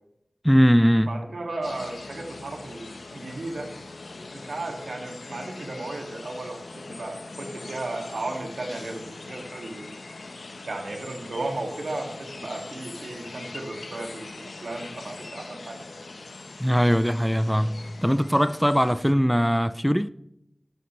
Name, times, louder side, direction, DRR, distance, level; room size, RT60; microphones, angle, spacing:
voice 1, 0.4-1.2 16.6-20.1, equal, ahead, 0.4 m, -21 dB
voice 2, 1.1-3.7 4.3-9.9 10.6-14.3 14.6-15.8, right 2 dB, 85° right, 2.3 m, -35 dB
sound 1, 1.6-19.1, left 3 dB, 80° left, 1.0 m, -42 dB
13.5 x 12.0 x 3.3 m
cardioid pair, 45°, 0 cm